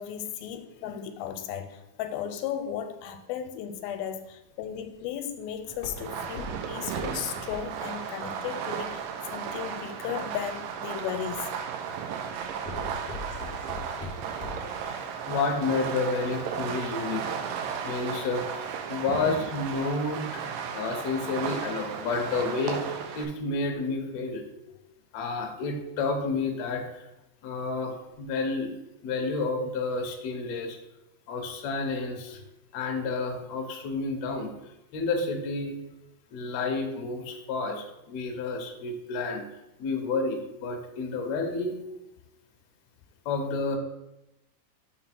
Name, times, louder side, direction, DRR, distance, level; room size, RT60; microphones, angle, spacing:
voice 1, 0.0-11.5 24.9-25.0 32.0-32.4, left 9 dB, 90° left, 7 dB, 2.4 m, -35 dB
Walk footsteps, 4.7-9.7 10.3-10.7 11.2-11.6 11.9-14.8 15.2-15.3, left 2 dB, 55° left, 0.7 m, -40 dB
Fireworks, 6.0-23.2, right 7 dB, 80° right, 2.1 m, -35 dB
voice 2, 14.8-17.4 17.8-20.4 20.7-24.4 25.1-27.0 27.4-28.7 29.0-30.8 31.3-32.4 32.7-34.5 34.9-35.8 36.3-39.4 39.8-41.8 43.3-43.8, left 3 dB, 70° left, 3 dB, 1.7 m, -30 dB
5.5 x 3.9 x 6.0 m, 0.93 s
omnidirectional pair, 4.3 m